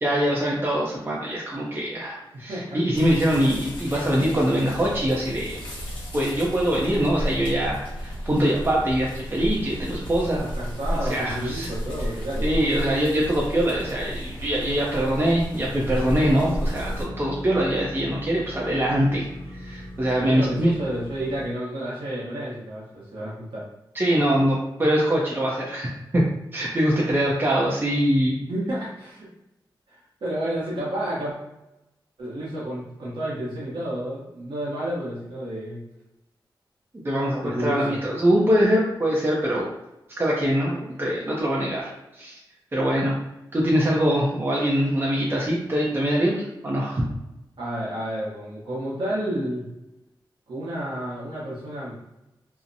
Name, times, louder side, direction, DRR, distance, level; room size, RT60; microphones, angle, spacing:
voice 1, 0.0-5.6 6.1-10.4 10.9-11.7 12.0-12.1 12.4-19.3 19.6-20.7 23.9-26.2 26.5-28.4 36.9-39.7 40.2-42.4 42.7-43.2 43.5-47.0, equal, 25° right, -4 dB, 0.5 m, -23 dB
voice 2, 2.3-2.8 10.4-12.6 20.2-23.7 28.5-29.3 29.9-31.3 32.2-35.8 37.4-38.0 47.6-49.7 50.5-51.9, right 1 dB, 70° right, -8 dB, 0.8 m, -31 dB
sound 1, 2.9-17.0, equal, 75° left, 0.8 m, -33 dB
sound 2, 16.0-21.5, equal, 15° left, 0.9 m, -39 dB
2.7 x 2.1 x 2.5 m, 0.94 s
cardioid pair, 70°, 9 cm